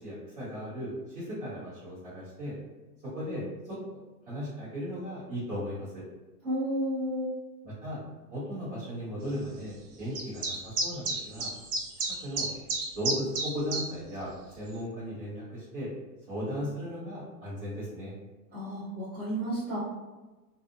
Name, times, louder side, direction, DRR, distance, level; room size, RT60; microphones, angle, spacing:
voice 1, 0.0-2.6 3.0-3.8 4.3-6.0 7.6-8.0 8.3-11.5 12.2-12.5 12.9-15.9 16.3-18.1, equal, 40° right, -12 dB, 1.1 m, -36 dB
voice 2, 6.4-7.3 18.5-19.8, equal, 20° right, -17 dB, 0.5 m, -32 dB
sound 1, 10.1-13.8, right 3 dB, 70° right, 0.7 m, -31 dB
2.5 x 2.0 x 2.5 m, 1.2 s
supercardioid pair, 175°, 48 cm